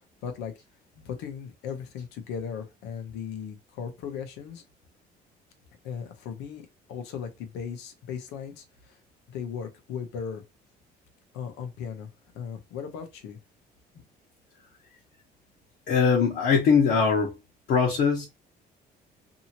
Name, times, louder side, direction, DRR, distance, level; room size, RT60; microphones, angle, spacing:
voice 1, 0.2-0.5 1.0-4.6 5.8-9.0 9.3-10.4 11.3-13.4, left 7 dB, 90° left, 0.8 m, -37 dB
voice 2, 15.9-17.3 17.7-18.3, left 5 dB, 70° left, 1.1 m, -21 dB
2.8 x 2.7 x 2.8 m
cardioid pair, 110°, 17 cm